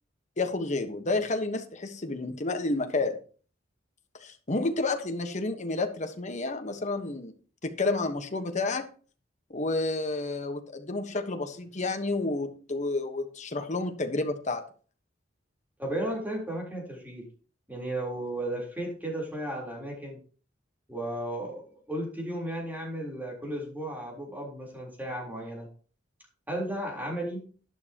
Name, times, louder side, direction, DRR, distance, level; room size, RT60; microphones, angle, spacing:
voice 1, 0.4-3.2 4.2-7.3 7.6-8.9 9.5-14.6, left 2 dB, 40° left, 6 dB, 1.3 m, -30 dB
voice 2, 15.8-17.3 17.7-20.2 20.9-25.7 26.5-27.5, right 1 dB, 10° right, -2 dB, 3.9 m, -34 dB
11.5 x 11.0 x 3.0 m, 0.41 s
head